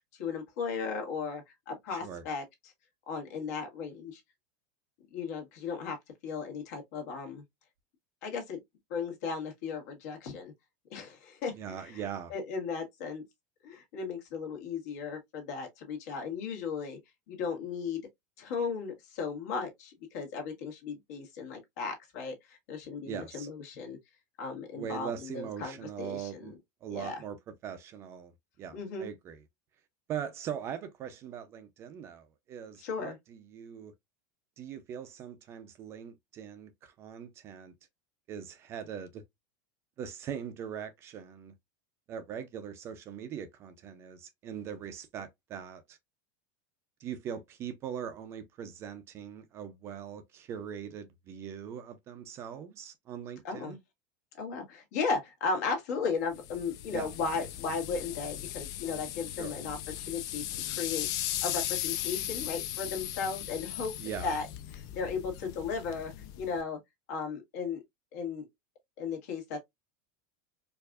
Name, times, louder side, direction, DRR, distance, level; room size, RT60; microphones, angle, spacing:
voice 1, 0.1-2.7 3.1-4.2 5.1-6.0 6.2-7.4 8.2-8.6 8.9-10.5 10.9-12.0 12.3-13.2 13.6-17.0 17.3-18.1 18.4-24.0 24.4-26.5 26.9-27.2 28.7-29.1 32.8-33.2 53.4-53.7 54.4-59.8 60.1-61.1 61.4-63.9 64.2-64.5 64.7-66.8 67.1-67.8 68.1-68.5 69.0-69.6, left 5 dB, 65° left, 1.6 m, -36 dB
voice 2, 1.9-2.2 11.6-12.3 23.0-23.5 24.7-27.4 27.6-28.3 28.6-29.4 30.1-33.9 34.6-37.7 38.3-39.2 40.0-41.5 42.1-46.0 47.0-53.8 56.9-57.1 59.4-59.6 64.0-64.4, right 8 dB, 25° right, 0.5 m, -41 dB
sound 1, 56.3-66.6, left 13 dB, 40° left, 0.4 m, -37 dB
4.6 x 2.5 x 2.3 m
supercardioid pair, 170°, 10 cm